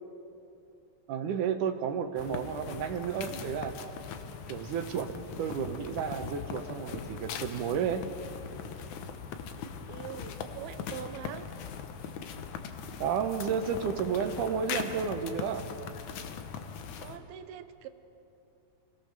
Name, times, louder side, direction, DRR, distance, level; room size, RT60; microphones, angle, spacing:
voice 1, 1.1-3.7 4.5-8.0 13.0-15.7, right 7 dB, 70° right, 8 dB, 2.2 m, -32 dB
sound 1, 2.2-17.2, left 6 dB, 65° left, 2.1 m, -40 dB
voice 2, 9.9-11.5 17.0-17.9, right 10 dB, 85° right, 10 dB, 2.9 m, -43 dB
28.0 x 17.0 x 6.7 m, 2.8 s
omnidirectional pair, 4.3 m